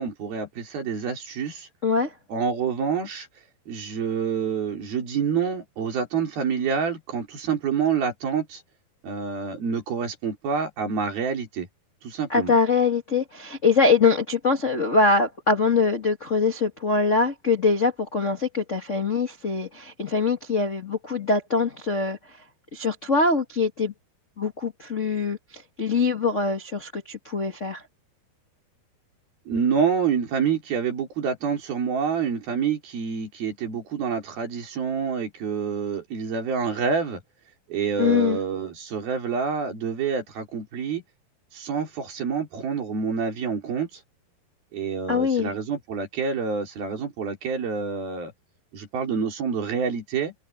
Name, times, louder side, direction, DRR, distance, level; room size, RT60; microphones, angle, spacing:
voice 1, 0.0-1.7 2.3-3.3 3.7-8.6 9.0-11.7 12.0-12.5 29.5-37.2 37.7-41.0 41.5-44.0 44.7-48.3 48.7-50.3, right 6 dB, 65° right, 5.5 m, -27 dB
voice 2, 1.8-2.1 12.3-22.2 22.7-23.9 24.4-27.8 38.0-38.4 45.1-45.5, left 4 dB, 55° left, 0.8 m, -23 dB
omnidirectional pair, 4.6 m